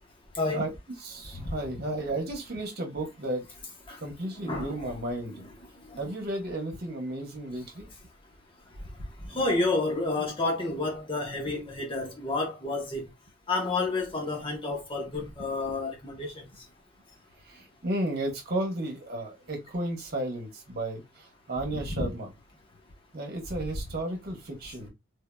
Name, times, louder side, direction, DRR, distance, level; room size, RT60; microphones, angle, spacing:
voice 1, 1.0-3.4 4.0-5.4 6.0-7.9 10.2-10.3 15.2-15.5 17.5-21.0 21.5-22.3 23.1-24.9, right 1 dB, 50° right, 1.2 m, -33 dB
voice 2, 4.4-5.0 5.4-5.5 5.9-6.0 9.3-13.0 13.5-16.4 21.7-22.1, left 2 dB, 25° left, 1.0 m, -30 dB
3.4 x 2.8 x 2.3 m
head